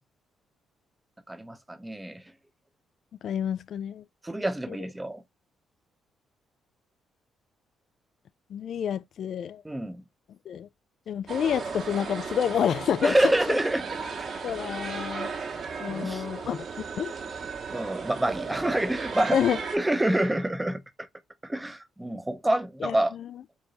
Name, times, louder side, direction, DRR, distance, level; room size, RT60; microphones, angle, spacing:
voice 1, 1.3-2.2 4.2-5.2 9.6-10.0 13.0-13.8 15.9-16.2 17.7-19.4 19.7-20.8 21.4-23.1, right 1 dB, 10° right, 0.8 m, -27 dB
voice 2, 3.2-4.0 4.7-4.8 8.5-9.6 10.5-10.7 11.1-13.3 14.4-15.3 15.8-16.7 17.0-17.1 19.3-19.6 22.8-23.3, left 8 dB, 65° left, 0.3 m, -28 dB
sound 1, 11.3-19.8, right 5 dB, 60° right, 1.6 m, -35 dB
4.8 x 3.8 x 2.8 m
cardioid pair, 90°, 0 cm